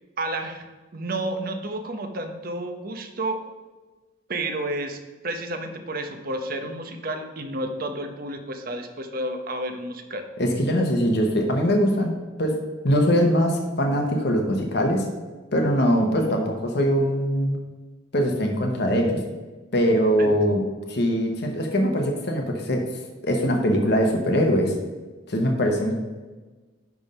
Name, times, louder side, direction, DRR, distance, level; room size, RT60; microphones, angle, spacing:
voice 1, 0.2-0.7 0.9-3.4 4.3-10.2 20.2-20.3, right 1 dB, 45° right, 6 dB, 0.8 m, -31 dB
voice 2, 10.4-12.6 12.8-15.1 15.5-17.6 18.1-19.2 19.7-22.9 23.2-24.8 25.3-26.0, equal, 55° left, 2 dB, 1.0 m, -22 dB
10.5 x 3.6 x 5.4 m, 1.2 s
head